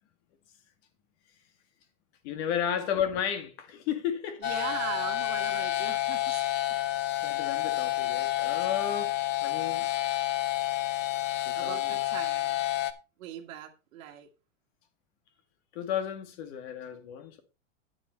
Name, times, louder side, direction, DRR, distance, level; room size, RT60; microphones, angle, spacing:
voice 1, 2.2-4.4 7.2-9.1 9.4-9.9 11.5-12.0 15.7-17.4, left 9 dB, 55° left, 2.1 m, -33 dB
sound 1, 4.4-12.9, left 14 dB, 25° left, 0.7 m, -29 dB
voice 2, 4.4-6.5 8.9-9.0 11.6-12.6 13.2-14.3, right 11 dB, 75° right, 1.7 m, -40 dB
9.9 x 7.5 x 4.2 m
supercardioid pair, 150°, 41 cm